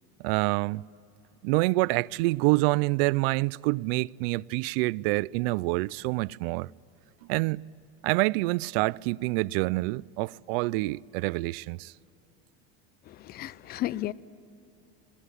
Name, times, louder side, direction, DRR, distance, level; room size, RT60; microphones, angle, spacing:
voice 1, 0.2-0.9 1.4-6.7 7.3-7.7 8.0-11.9, right 23 dB, 75° right, 0.5 m, -27 dB
voice 2, 13.1-14.1, left 15 dB, 35° left, 0.5 m, -33 dB
21.5 x 20.5 x 9.8 m
cardioid pair, 155°, 29 cm